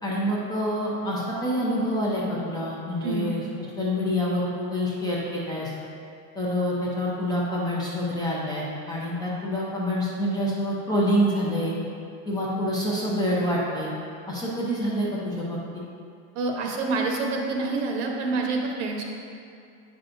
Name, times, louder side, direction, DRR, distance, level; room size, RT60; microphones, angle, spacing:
voice 1, 0.0-3.4 3.8-5.7 6.4-11.7 12.3-13.9 14.3-15.6, equal, 10° left, -6 dB, 0.6 m, -26 dB
voice 2, 16.3-19.0, right 3 dB, 60° right, 1 dB, 1.1 m, -27 dB
8.6 x 5.8 x 2.6 m, 2.4 s
supercardioid pair, 165°, 39 cm